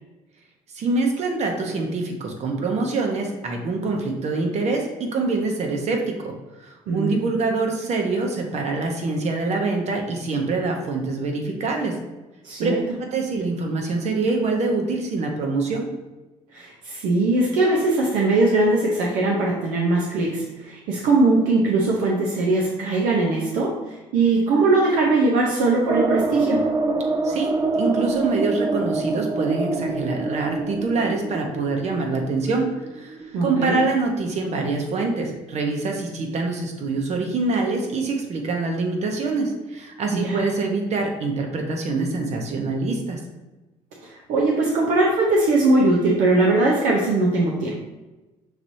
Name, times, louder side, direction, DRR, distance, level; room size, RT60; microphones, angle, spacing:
voice 1, 0.7-6.3 6.6-12.0 12.6-12.7 13.0-15.9 27.2-27.5 27.8-32.7 32.9-43.2, right 3 dB, 55° right, 2 dB, 1.0 m, -25 dB
voice 2, 12.4-12.8 16.5-23.8 24.1-26.7 33.3-33.9 40.1-40.5 44.0-47.8, right 2 dB, 80° right, -2 dB, 0.7 m, -20 dB
sound 1, 25.9-34.4 34.7-34.8 35.1-35.2, right 3 dB, 30° right, 0.4 m, -26 dB
5.9 x 3.0 x 2.7 m, 1.1 s
supercardioid pair, 85°, 13 cm